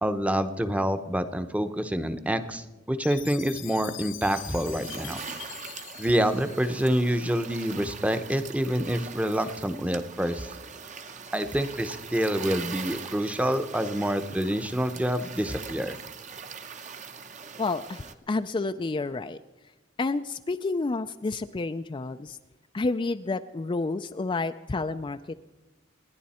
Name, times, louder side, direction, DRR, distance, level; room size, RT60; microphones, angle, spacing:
voice 1, 0.0-5.2 6.0-10.5 11.3-16.0, equal, 5° right, 9 dB, 0.8 m, -27 dB
Chime, 3.0-7.3, left 13 dB, 80° left, 0.9 m, -43 dB
sound 1, 4.3-18.1, right 5 dB, 40° right, 0.9 m, -41 dB
voice 2, 17.6-19.4 20.0-22.4 22.7-25.3, left 3 dB, 25° left, 8 dB, 0.4 m, -30 dB
29.0 x 10.5 x 4.3 m, 1.1 s
head